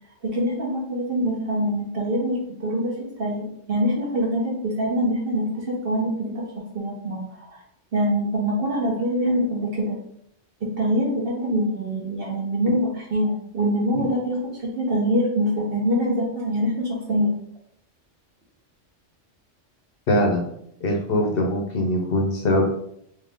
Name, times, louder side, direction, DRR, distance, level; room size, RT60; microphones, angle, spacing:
voice 1, 0.2-7.2 7.5-7.6 7.9-10.0 10.6-17.3, equal, 50° right, -2 dB, 1.1 m, -24 dB
voice 2, 20.1-20.5 20.8-22.7, left 1 dB, 55° left, 0 dB, 0.8 m, -22 dB
3.6 x 2.7 x 3.6 m, 0.71 s
omnidirectional pair, 1.3 m